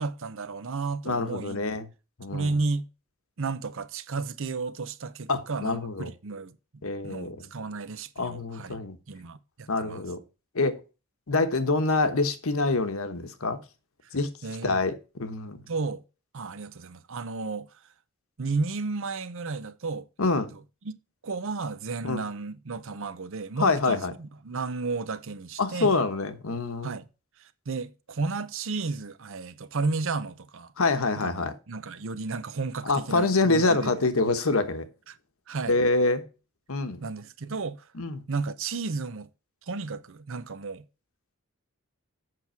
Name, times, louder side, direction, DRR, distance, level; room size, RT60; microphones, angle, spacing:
voice 1, 0.0-1.6 2.3-2.9 3.4-6.5 7.0-8.8 9.1-10.0 14.4-14.8 15.7-16.0 16.3-17.7 18.4-20.4 20.8-20.9 21.2-26.0 26.8-27.1 27.4-30.7 31.2-31.3 31.7-33.9 35.1-35.2 35.5-35.8 37.0-37.8 38.3-39.3 39.7-40.8, right 4 dB, 60° right, 0.7 m, -33 dB
voice 2, 1.0-1.9 2.2-2.5 5.3-6.1 6.8-7.4 8.2-9.0 9.7-10.2 10.5-10.8 11.3-13.6 14.1-14.3 14.6-15.6 20.2-20.5 22.0-22.2 23.6-24.1 25.6-26.9 30.8-31.5 32.8-34.9 35.7-36.2 36.7-37.0 37.9-38.2, left 3 dB, 65° left, 1.1 m, -26 dB
7.8 x 6.0 x 4.5 m
head